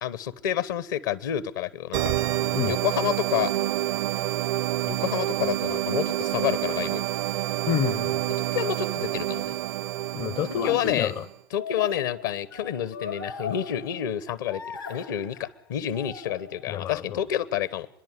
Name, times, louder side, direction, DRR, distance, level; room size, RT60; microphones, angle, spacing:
voice 1, 0.0-2.1 2.6-3.5 4.9-7.0 8.5-9.5 10.6-11.1 11.5-14.6 14.9-17.9, left 10 dB, 65° left, 1.1 m, -29 dB
sound 1, 1.9-11.3, right 14 dB, 60° right, 0.7 m, -28 dB
voice 2, 7.7-8.2 10.1-11.2 16.7-17.2, left 10 dB, 40° left, 0.7 m, -28 dB
sound 2, 10.4-10.8 11.6-14.2 14.5-15.5 15.9-16.8, left 6 dB, 85° left, 2.3 m, -39 dB
30.0 x 11.0 x 10.0 m
figure-of-eight pair, 80°, 11 cm